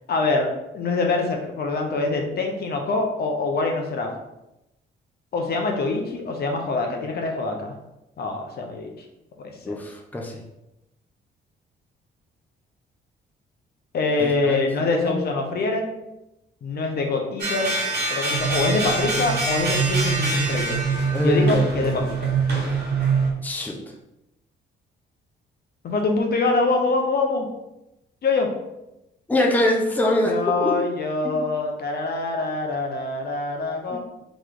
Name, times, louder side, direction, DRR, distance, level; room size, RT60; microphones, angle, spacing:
voice 1, 0.1-0.5 0.7-4.1 5.3-7.8 8.2-8.9 9.4-9.7 13.9-16.0 16.6-17.8 18.1-20.8 21.2-22.3 25.8-27.5 28.2-28.5 30.3-34.0, left 3 dB, 55° left, 2 dB, 0.7 m, -24 dB
voice 2, 9.6-10.4 14.2-14.6 14.9-15.2 21.1-21.9 23.4-23.8 29.3-30.3 30.6-30.8 31.2-31.4 33.9-34.0, left 1 dB, 10° left, 0 dB, 0.6 m, -23 dB
sound 1, 17.4-23.3, right 1 dB, 55° right, 1.2 m, -28 dB
sound 2, 18.3-23.3, right 6 dB, 85° right, 0.6 m, -25 dB
3.1 x 3.1 x 3.7 m, 0.91 s
cardioid pair, 90°, 20 cm